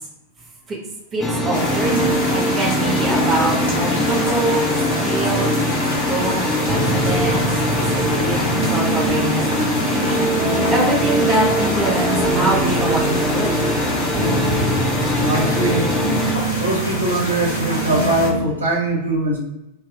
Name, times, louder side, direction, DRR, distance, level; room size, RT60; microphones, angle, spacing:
voice 1, 1.1-4.6 5.0-5.6 6.1-13.6, right 2 dB, 25° right, -3 dB, 1.1 m, -24 dB
sound 1, 1.2-16.4, left 1 dB, 15° left, 0.5 m, -22 dB
sound 2, 1.5-18.3, equal, 65° left, 1.1 m, -27 dB
sound 3, 6.7-18.5, right 2 dB, 50° right, 0.6 m, -25 dB
voice 2, 15.1-15.9 16.6-19.4, right 2 dB, 75° right, -2 dB, 1.0 m, -21 dB
3.4 x 2.8 x 2.3 m, 0.90 s
figure-of-eight pair, 90°, 0 cm